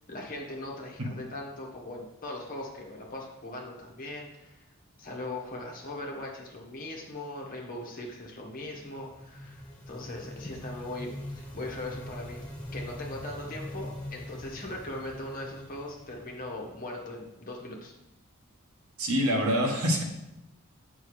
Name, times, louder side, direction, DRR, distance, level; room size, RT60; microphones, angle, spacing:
voice 1, 0.1-4.6 5.0-12.4 12.7-17.9, left 1 dB, 40° left, -1 dB, 1.5 m, -39 dB
sound 1, 8.5-17.1, left 1 dB, 5° left, 1.5 m, -43 dB
voice 2, 19.0-20.0, equal, 90° right, 1 dB, 1.4 m, -25 dB
8.1 x 6.2 x 3.2 m, 0.91 s
head